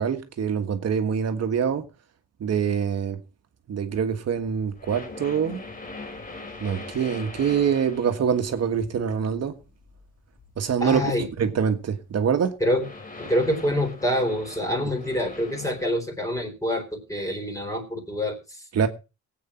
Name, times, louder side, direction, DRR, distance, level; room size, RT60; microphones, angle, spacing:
voice 1, 0.0-1.9 2.4-3.2 3.7-5.6 6.6-9.6 10.6-12.6 18.7-18.9, right 7 dB, 55° right, 1.6 m, -25 dB
sound 1, 3.9-11.4 11.7-11.9 12.6-15.9, left 3 dB, 30° left, 2.6 m, -42 dB
voice 2, 10.8-11.3 12.6-12.9 13.2-18.6, equal, 10° left, 3.9 m, -26 dB
19.0 x 8.5 x 4.3 m
cardioid pair, 90°, 30 cm